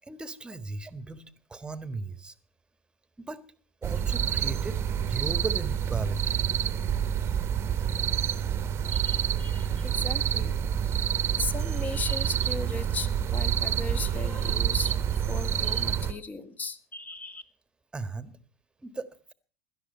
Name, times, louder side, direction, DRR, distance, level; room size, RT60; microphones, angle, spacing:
voice 1, 0.1-1.2 1.5-2.3 3.2-3.4 3.8-6.7 17.9-18.3 18.8-19.1, right 3 dB, 10° right, 13 dB, 1.6 m, -37 dB
sound 1, 3.8-16.1, right 9 dB, 35° right, 1.3 m, -28 dB
voice 2, 8.9-10.5 10.8-17.4, left 3 dB, 20° left, 10 dB, 1.9 m, -37 dB
17.5 x 12.0 x 5.6 m, 0.40 s
hypercardioid pair, 90°, 7 cm